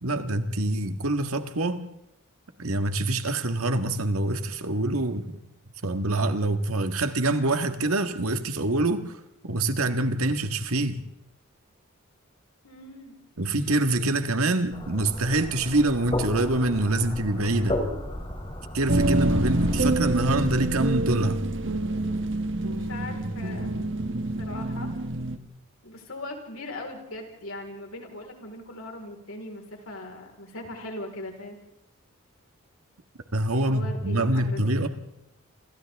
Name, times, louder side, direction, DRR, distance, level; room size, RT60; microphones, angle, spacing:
voice 1, 0.0-1.8 2.6-5.2 5.8-9.1 9.4-11.0 13.4-17.8 18.7-21.4 33.3-34.9, right 2 dB, 85° right, 1.7 m, -25 dB
voice 2, 12.6-13.1 22.6-23.7 24.4-24.9 25.8-31.6 33.6-34.8, left 1 dB, 75° left, 4.5 m, -39 dB
sound 1, 14.7-19.8, left 1 dB, 25° left, 3.5 m, -34 dB
sound 2, 18.9-25.4, right 2 dB, 55° right, 1.3 m, -27 dB
28.5 x 27.5 x 3.6 m
head